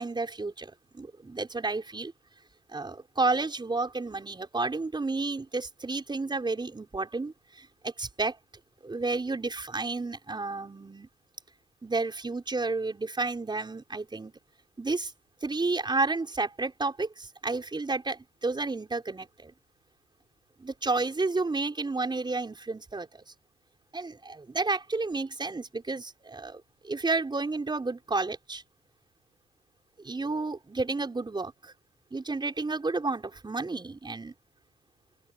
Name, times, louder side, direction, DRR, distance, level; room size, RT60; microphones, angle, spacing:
voice 1, 0.0-2.1 2.7-8.4 8.8-11.1 11.8-14.3 14.8-15.1 15.4-19.5 20.6-23.2 23.9-28.6 30.0-31.7 32.1-34.3, right 3 dB, 20° right, 5.8 m, -31 dB
open air
cardioid pair, 90°, 20 cm